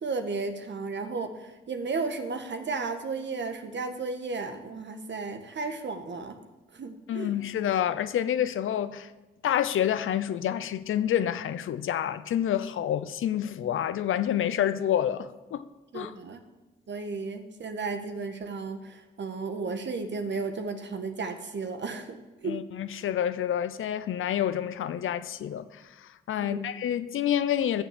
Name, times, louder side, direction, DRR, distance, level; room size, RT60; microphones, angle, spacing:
voice 1, 0.0-6.4 6.7-7.3 15.9-16.4 16.9-22.6 26.4-26.7, right 4 dB, 60° right, 1.5 m, -34 dB
voice 2, 7.1-9.1 9.4-15.6 15.9-16.1 22.4-27.8, left 10 dB, 75° left, 0.7 m, -28 dB
12.5 x 6.9 x 7.6 m
supercardioid pair, 45°, 21 cm